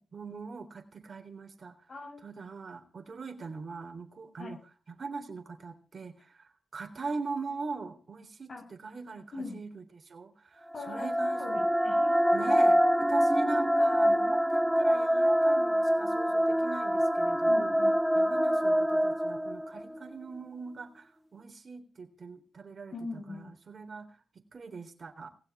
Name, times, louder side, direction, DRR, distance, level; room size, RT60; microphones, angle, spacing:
voice 1, 0.1-1.8 2.2-4.6 4.9-11.4 12.3-17.8 18.1-24.2 24.5-25.3, right 4 dB, 55° right, 6 dB, 3.6 m, -41 dB
voice 2, 1.9-2.3 4.4-4.5 8.5-8.6 9.3-9.6 10.7-11.1 11.4-12.3 17.4-17.9 22.9-23.5, left 3 dB, 65° left, 5 dB, 7.7 m, -41 dB
sound 1, 10.7-20.0, equal, 5° right, 1.1 m, -25 dB
19.5 x 6.9 x 9.0 m, 0.37 s
cardioid pair, 65°, 0 cm